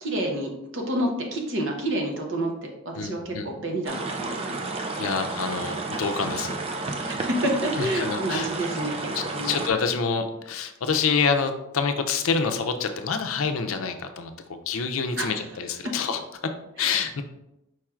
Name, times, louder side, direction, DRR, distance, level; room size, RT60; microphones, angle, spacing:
voice 1, 0.0-4.7 7.1-9.6 15.2-15.4 16.8-17.0, right 1 dB, 60° right, 1 dB, 0.9 m, -29 dB
voice 2, 3.0-3.5 5.0-6.6 7.8-8.5 9.4-16.2 16.8-17.2, left 5 dB, 80° left, 7 dB, 0.5 m, -27 dB
sound 1, 3.9-9.7, right 3 dB, 25° right, 0.3 m, -31 dB
4.7 x 4.4 x 2.4 m, 0.88 s
head